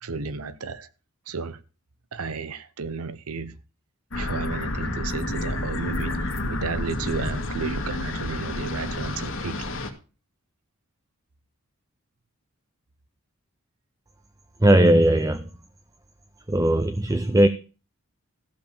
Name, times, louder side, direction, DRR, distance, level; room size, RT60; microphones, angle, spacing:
voice 1, 0.0-0.9 1.3-1.6 2.1-3.6 4.2-9.7, right 4 dB, 90° right, 0.8 m, -33 dB
sound 1, 4.1-9.9, left 2 dB, 60° left, 1.9 m, -30 dB
voice 2, 14.6-15.5 16.5-17.5, right 1 dB, 15° right, 0.5 m, -18 dB
15.0 x 5.3 x 7.0 m
head